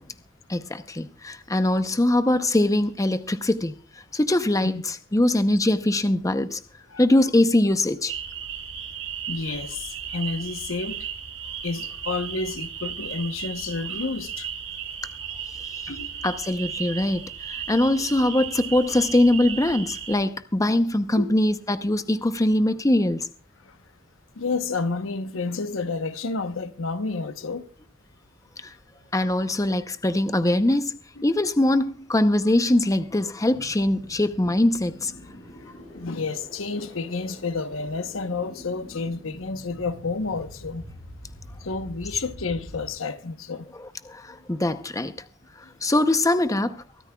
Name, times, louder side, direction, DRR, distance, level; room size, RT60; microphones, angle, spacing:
voice 1, 0.5-3.7 4.1-6.6 7.0-8.1 16.2-23.3 28.6-28.7 29.1-35.1 44.0-45.1 45.8-46.7, left 1 dB, 15° left, 0.7 m, -22 dB
sound 1, 8.1-20.1, right 8 dB, 90° right, 4.5 m, -35 dB
voice 2, 9.3-11.1 11.6-14.5 15.9-16.3 21.1-21.3 23.7-23.8 24.4-27.7 31.2-31.3 35.9-40.8 41.6-43.7, left 4 dB, 90° left, 1.0 m, -30 dB
sound 2, 33.5-42.9, equal, 40° left, 7.3 m, -45 dB
24.0 x 13.0 x 2.3 m
head